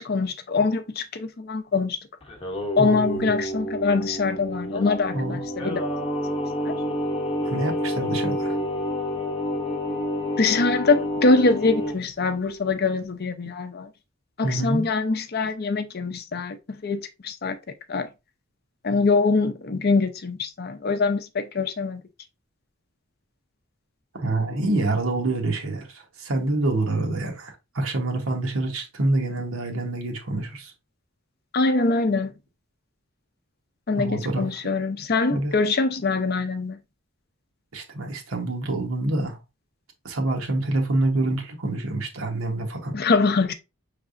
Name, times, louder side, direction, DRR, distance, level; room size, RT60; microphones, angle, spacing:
voice 1, 0.0-2.0 2.8-5.9 6.6-6.8 10.4-13.9 14.4-17.6 17.9-18.1 18.8-22.0 31.5-32.3 33.9-36.8 42.9-43.5, left 3 dB, 45° left, 0.5 m, -23 dB
Singing, 2.2-12.0, left 1 dB, 25° left, 0.8 m, -29 dB
voice 2, 2.8-3.3 5.1-5.4 7.4-8.6 14.4-14.9 24.1-30.7 34.0-34.5 35.3-35.5 37.7-39.4 40.0-43.0, right 2 dB, 75° right, 1.1 m, -26 dB
5.9 x 3.3 x 2.5 m
head